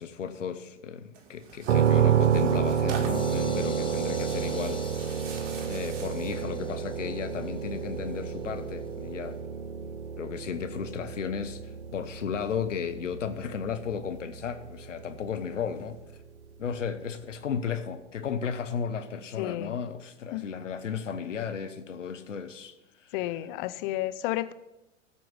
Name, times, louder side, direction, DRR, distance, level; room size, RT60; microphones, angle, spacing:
voice 1, 0.0-5.2 5.6-9.4 10.2-16.0 16.6-23.1, left 7 dB, 85° left, 0.9 m, -34 dB
Tearing, 1.1-6.5, right 5 dB, 45° right, 1.9 m, -44 dB
sound 1, 1.7-15.4, right 8 dB, 70° right, 0.8 m, -29 dB
sound 2, 3.1-8.9, left 5 dB, 15° left, 1.0 m, -48 dB
voice 2, 19.4-19.7 20.3-20.5 23.1-24.5, left 15 dB, 45° left, 0.6 m, -31 dB
14.0 x 4.6 x 7.9 m
hypercardioid pair, 100°, 36 cm